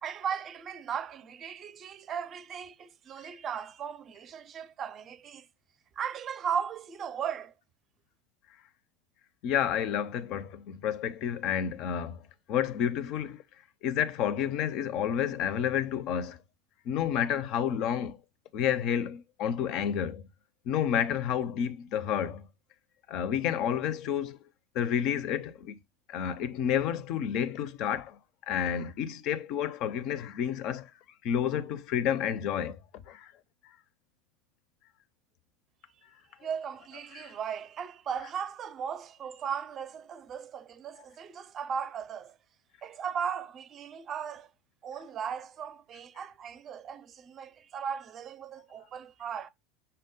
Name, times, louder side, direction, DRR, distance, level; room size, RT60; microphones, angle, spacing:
voice 1, 0.0-5.5 6.0-7.5 36.4-42.4 42.8-44.5 44.8-49.5, right 7 dB, 40° right, 0.5 m, -37 dB
voice 2, 9.4-12.2 12.5-13.4 13.8-16.4 16.9-18.2 18.5-20.3 20.7-22.5 23.1-24.4 24.7-25.8 26.1-28.2 28.5-30.9 31.2-32.8 33.1-33.3 37.1-37.3, left 9 dB, 55° left, 0.5 m, -30 dB
5.5 x 2.1 x 3.7 m
hypercardioid pair, 85°, 0 cm